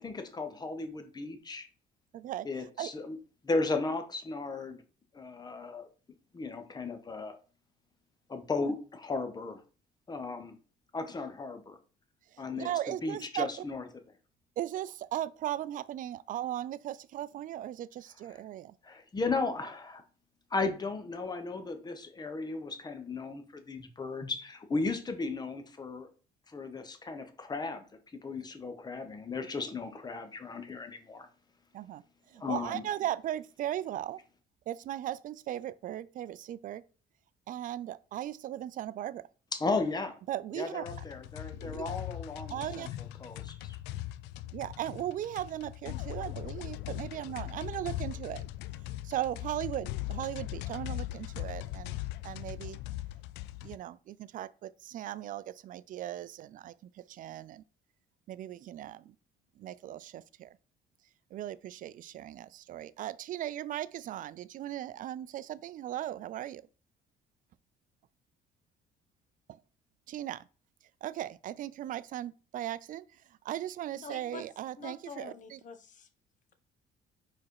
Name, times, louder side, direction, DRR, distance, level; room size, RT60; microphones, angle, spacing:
voice 1, 0.0-1.7 2.4-3.2 3.4-4.8 5.1-5.9 6.3-7.4 8.3-9.6 10.1-10.6 10.9-11.8 12.4-13.8 18.3-18.4 18.8-20.0 20.5-26.1 26.5-27.8 28.1-31.3 32.4-32.8 39.5-40.2 40.5-43.8, left 3 dB, 25° left, 1.1 m, -35 dB
voice 2, 2.1-2.5 2.8-2.9 8.6-8.7 12.5-13.5 14.6-18.7 31.7-32.0 32.3-34.2 34.7-36.8 37.5-39.2 40.3-40.8 41.5-41.9 42.5-42.9 44.5-48.4 49.0-52.0 52.2-52.8 53.6-56.7 57.1-57.6 58.3-59.1 59.6-60.5 61.3-66.6 69.5-69.6 70.1-70.4 71.0-73.0 73.4-75.6, right 12 dB, 55° right, 0.4 m, -37 dB
sound 1, 40.8-53.8, left 15 dB, 90° left, 0.4 m, -40 dB
voice 3, 73.9-74.4 74.8-76.1, left 5 dB, 50° left, 1.0 m, -46 dB
4.8 x 4.3 x 4.7 m
cardioid pair, 110°, 17 cm